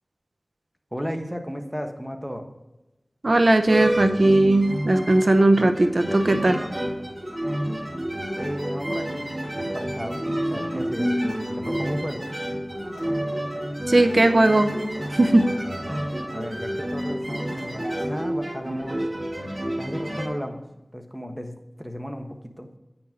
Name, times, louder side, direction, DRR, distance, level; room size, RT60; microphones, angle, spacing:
voice 1, 0.9-2.5 8.4-11.1 11.5-12.3 16.3-19.0 19.8-20.7 20.9-22.7, equal, ahead, 4 dB, 1.3 m, -34 dB
voice 2, 3.2-6.6 13.9-14.7 15.1-15.6, right 2 dB, 70° right, 7 dB, 0.7 m, -18 dB
sound 1, 3.7-20.3, equal, 35° right, 2.4 m, -29 dB
9.0 x 6.0 x 5.2 m, 0.99 s
wide cardioid pair, 40°, 0 cm